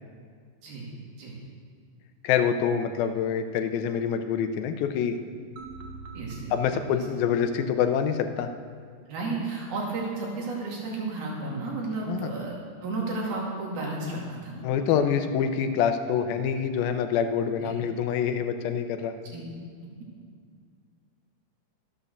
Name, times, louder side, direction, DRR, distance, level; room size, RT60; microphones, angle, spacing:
voice 1, 2.2-5.2 6.5-8.5 12.1-12.3 14.6-19.2, left 7 dB, 85° left, 8 dB, 2.6 m, -26 dB
sound 1, 5.6-8.6, right 4 dB, 70° right, 2.6 m, -45 dB
voice 2, 6.1-7.0 9.1-12.5 12.8-14.6 14.9-15.0 17.6-17.7 19.3-19.4, right 3 dB, 90° right, -3 dB, 4.3 m, -33 dB
12.5 x 8.7 x 6.7 m, 2.1 s
omnidirectional pair, 4.1 m